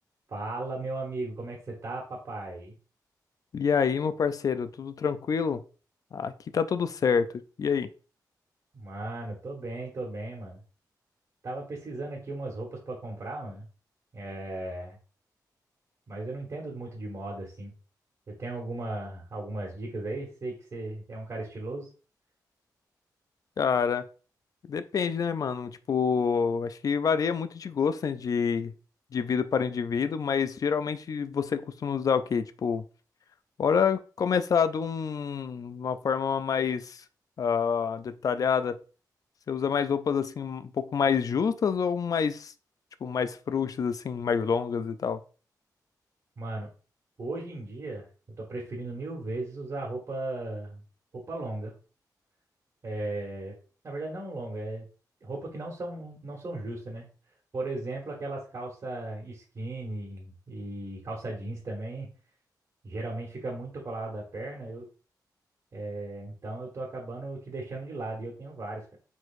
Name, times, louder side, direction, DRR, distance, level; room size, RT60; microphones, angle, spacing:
voice 1, 0.3-2.7 8.7-10.6 11.4-13.7 14.1-15.0 16.1-17.7 18.3-21.9 46.4-46.7 47.2-48.1 48.4-50.8 51.1-51.7 52.8-53.5 53.8-54.8 55.2-57.1 57.5-62.1 62.8-64.9 65.7-69.0, right 2 dB, 50° right, 1.5 m, -36 dB
voice 2, 3.5-5.6 6.1-7.3 7.6-7.9 23.6-24.0 24.7-28.7 29.1-32.9 33.6-37.0 37.4-38.8 39.5-42.5 43.0-45.2, left 6 dB, 55° left, 0.4 m, -27 dB
4.5 x 4.5 x 2.5 m
wide cardioid pair, 115°, 7 cm